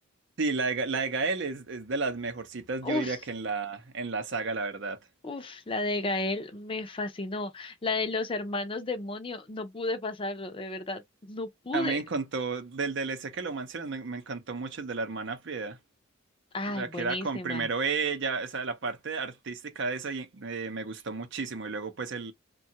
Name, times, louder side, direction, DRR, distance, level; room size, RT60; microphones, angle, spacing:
voice 1, 0.4-5.0 11.7-15.8 16.7-22.3, right 4 dB, 60° right, 0.6 m, -32 dB
voice 2, 2.8-3.2 5.2-12.0 16.5-17.7, left 2 dB, 25° left, 0.5 m, -33 dB
2.7 x 2.3 x 2.7 m
head